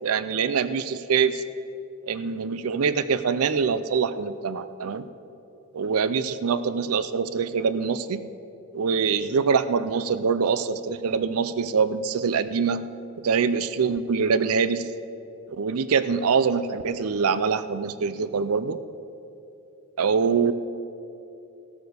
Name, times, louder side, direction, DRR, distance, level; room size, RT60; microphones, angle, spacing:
voice 1, 0.0-1.4 2.0-5.1 5.7-8.3 8.7-12.9 13.2-14.9 15.5-18.8 20.0-20.5, right 5 dB, 75° right, 13 dB, 0.5 m, -24 dB
15.5 x 6.9 x 6.5 m, 2.8 s
head